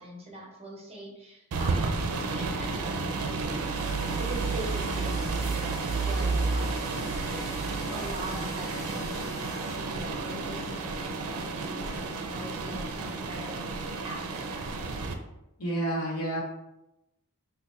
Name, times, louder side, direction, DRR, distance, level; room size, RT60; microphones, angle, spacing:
voice 1, 0.0-7.5 7.9-14.7, right 1 dB, 25° right, -2 dB, 0.7 m, -42 dB
sound 1, 1.5-15.1, right 3 dB, 70° right, 0.4 m, -31 dB
Domestic sounds home sounds, 3.7-9.8, left 1 dB, 15° left, 0.5 m, -46 dB
voice 2, 15.6-16.4, right 1 dB, 85° left, -3 dB, 1.0 m, -29 dB
3.3 x 2.1 x 4.1 m, 0.90 s
head